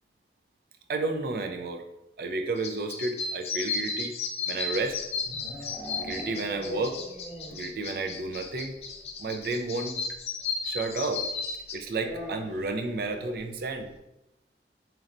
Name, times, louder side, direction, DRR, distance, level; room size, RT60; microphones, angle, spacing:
voice 1, 0.9-1.8 2.2-4.1 4.5-5.0 6.0-7.0 7.5-8.8 9.2-10.0 10.6-11.2 11.7-13.9, right 3 dB, 55° right, 6 dB, 0.3 m, -31 dB
sound 1, 2.6-11.7, left 4 dB, 35° left, 0.3 m, -34 dB
sound 2, 5.0-7.7 8.0-8.1 8.4-8.5 8.8-8.9 10.1-10.2 11.9-12.8, right 1 dB, 10° right, 0.9 m, -40 dB
3.1 x 2.5 x 4.1 m, 0.87 s
head